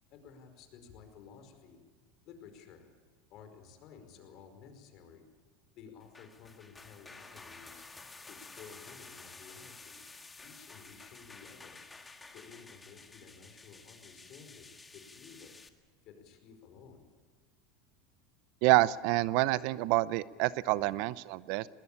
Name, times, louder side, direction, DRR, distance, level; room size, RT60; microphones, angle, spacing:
voice 1, 0.1-1.9 2.2-2.9 3.3-5.2 5.7-7.9 8.3-10.0 10.4-11.8 12.3-15.6 16.0-17.1, left 6 dB, 55° left, 7 dB, 4.9 m, -54 dB
sound 1, 6.0-15.7, left 3 dB, 15° left, 1.8 m, -52 dB
voice 2, 18.6-21.7, right 18 dB, 65° right, 18 dB, 0.7 m, -27 dB
20.5 x 20.0 x 8.7 m, 1.4 s
supercardioid pair, 105°, 0 cm